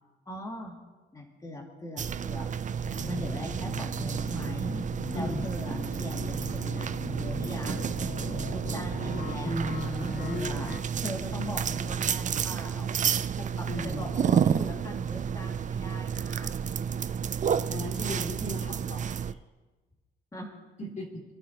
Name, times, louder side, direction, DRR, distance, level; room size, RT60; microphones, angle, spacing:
voice 1, 0.3-0.8 1.1-2.5 3.1-4.7 5.1-7.9 8.5-10.7 11.0-13.0 13.4-16.5 20.3-20.6, equal, 15° left, -3 dB, 2.7 m, -40 dB
sound 1, 2.0-19.3, right 7 dB, 40° right, 0.5 m, -31 dB
sound 2, 2.8-10.8, left 4 dB, 55° left, 1.3 m, -39 dB
voice 2, 5.1-5.5 9.4-10.8 13.7-14.1 17.7-19.4 20.8-21.2, equal, 40° left, -1 dB, 3.2 m, -36 dB
27.5 x 11.0 x 3.1 m, 1.3 s
cardioid pair, 90°, 20 cm